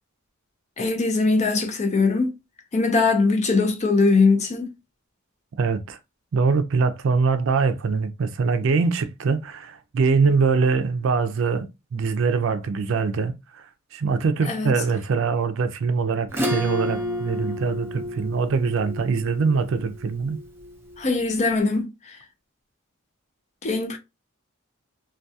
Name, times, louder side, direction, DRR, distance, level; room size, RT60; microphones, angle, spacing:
voice 1, 0.8-2.3 2.7-4.7 14.5-14.7 21.0-22.2 23.6-24.0, left 3 dB, 35° left, 0.5 m, -21 dB
voice 2, 5.6-6.0 6.3-13.6 13.9-20.4, right 5 dB, 65° right, 0.4 m, -23 dB
Acoustic guitar / Strum, 16.3-21.2, left 1 dB, 10° right, 0.6 m, -31 dB
2.3 x 2.3 x 2.6 m
head